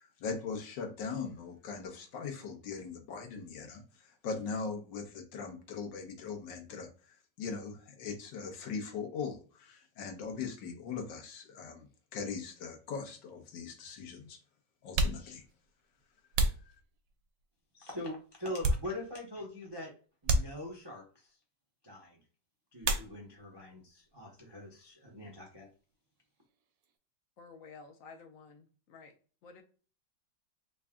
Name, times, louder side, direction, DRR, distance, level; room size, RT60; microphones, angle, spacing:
voice 1, 0.0-3.8 4.2-6.9 7.4-11.9 12.1-14.4 14.8-15.4, left 5 dB, 85° left, 4 dB, 1.6 m, -40 dB
sound 1, 13.0-13.1 14.1-14.2 14.8-17.4 18.0-19.3 19.6-19.8 20.2-21.0 22.8-23.6 23.9-24.5 24.8-27.0, right 2 dB, 80° right, 1.4 m, -34 dB
voice 2, 17.7-19.9 20.2-21.4 21.8-22.2 22.7-25.7, left 1 dB, 30° right, -1 dB, 0.4 m, -42 dB
voice 3, 27.4-29.2 29.4-29.6, left 4 dB, 65° left, 6 dB, 0.8 m, -52 dB
3.9 x 2.2 x 3.5 m, 0.39 s
omnidirectional pair, 1.9 m